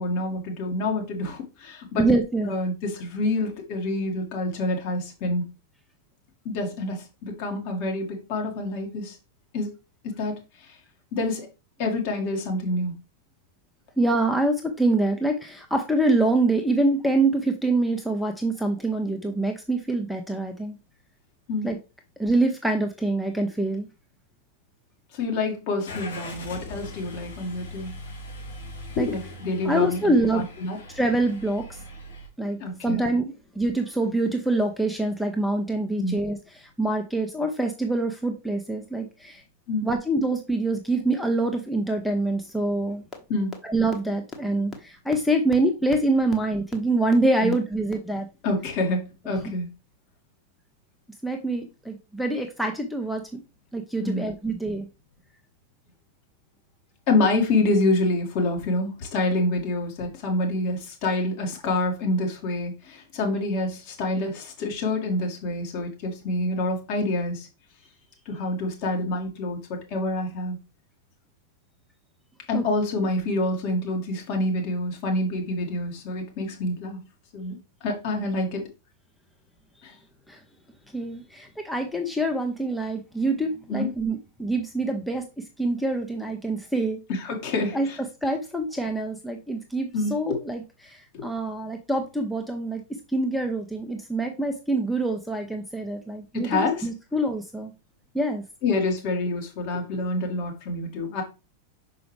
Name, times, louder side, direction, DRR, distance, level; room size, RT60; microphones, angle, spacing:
voice 1, 0.0-2.1 2.5-5.4 6.5-9.2 9.5-9.7 10.0-10.4 11.1-11.5 11.8-12.9 21.5-21.7 25.1-28.0 29.0-30.8 32.6-33.0 36.0-36.2 39.7-39.9 43.3-43.6 47.4-47.5 48.4-49.7 54.0-54.3 57.1-67.5 68.3-70.6 72.5-77.0 77.3-78.6 79.8-79.9 83.7-83.9 87.1-88.0 89.9-90.1 91.1-91.2 96.3-96.9 98.6-101.2, left 2 dB, 45° left, 2.0 m, -27 dB
voice 2, 2.0-2.5 14.0-20.8 21.6-21.8 22.2-23.9 29.0-29.1 29.6-30.5 30.9-31.8 32.4-39.4 39.8-43.0 43.6-48.3 51.2-53.4 53.7-54.9 72.5-72.6 80.3-80.4 80.9-85.2 85.6-87.0 87.7-87.9 88.2-92.8 93.1-97.7 98.1-98.4, right 2 dB, 5° left, 0.8 m, -25 dB
Car / Engine starting, 25.8-32.3, left 1 dB, 70° left, 2.5 m, -40 dB
sound 1, 43.1-43.2 43.5-43.6 43.9-44.0 44.3-44.4 44.7-44.8 45.1-45.2 45.5-45.6 45.9-46.0 46.3-46.4 46.7-46.8 47.1-47.2 47.5-47.6 47.9-48.0, left 5 dB, 20° left, 1.4 m, -37 dB
6.0 x 5.0 x 3.2 m
figure-of-eight pair, 90°, 0 cm